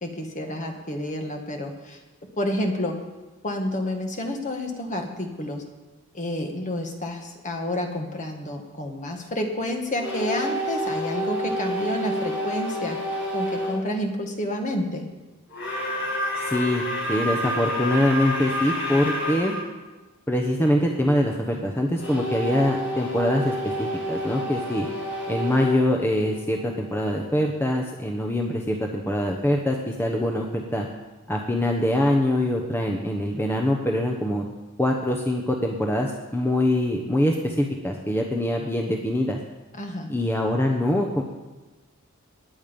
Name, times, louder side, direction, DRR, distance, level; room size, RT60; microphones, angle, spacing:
voice 1, 0.0-2.0 2.4-3.0 3.4-5.6 6.1-13.0 13.3-15.1 39.8-40.1, left 1 dB, 35° left, 3 dB, 1.7 m, -29 dB
sound 1, 9.9-13.8 15.5-19.6 22.0-26.8, equal, 55° left, 5.3 m, -29 dB
voice 2, 16.3-19.5 20.3-24.9 25.3-30.9 31.3-34.4 34.8-39.4 40.1-41.2, left 1 dB, 10° left, 1 dB, 1.0 m, -24 dB
19.5 x 9.4 x 5.3 m, 1.2 s
head